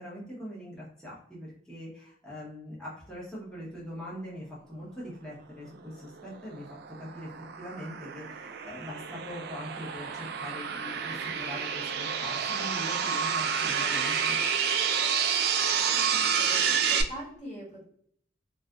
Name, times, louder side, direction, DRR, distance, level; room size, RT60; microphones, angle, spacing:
voice 1, 0.0-6.7 7.0-7.3 7.6-14.4, equal, 5° left, -7 dB, 0.8 m, -42 dB
sound 1, 6.2-17.0, right 7 dB, 55° right, 0.3 m, -29 dB
voice 2, 15.8-17.8, equal, 40° left, -4 dB, 1.1 m, -43 dB
2.6 x 2.4 x 2.3 m, 0.64 s
head